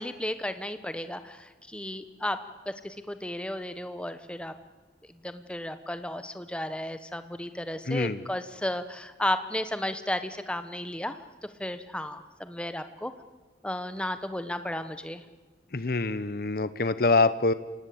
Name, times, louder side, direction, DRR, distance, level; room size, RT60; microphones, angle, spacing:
voice 1, 0.0-2.4 2.7-4.5 5.2-11.2 11.6-13.1 13.6-15.2, left 1 dB, 5° left, 10 dB, 1.0 m, -33 dB
voice 2, 7.9-8.2 15.7-17.5, left 3 dB, 55° left, 14 dB, 0.8 m, -25 dB
27.5 x 18.0 x 8.5 m, 1.3 s
head